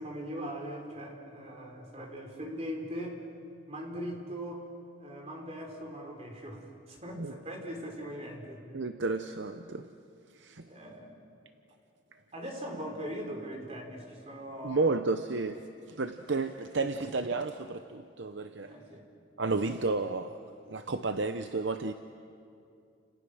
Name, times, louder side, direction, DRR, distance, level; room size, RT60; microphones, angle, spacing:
voice 1, 0.0-3.2 3.7-4.7 5.0-8.6 10.7-11.1 12.3-14.9 18.7-19.0, equal, 30° right, 3.7 m, -40 dB
voice 2, 8.7-9.9 10.3-10.7 14.6-15.6 15.9-18.7 19.4-21.9, right 3 dB, 60° right, 0.7 m, -32 dB
30.0 x 28.5 x 6.3 m
head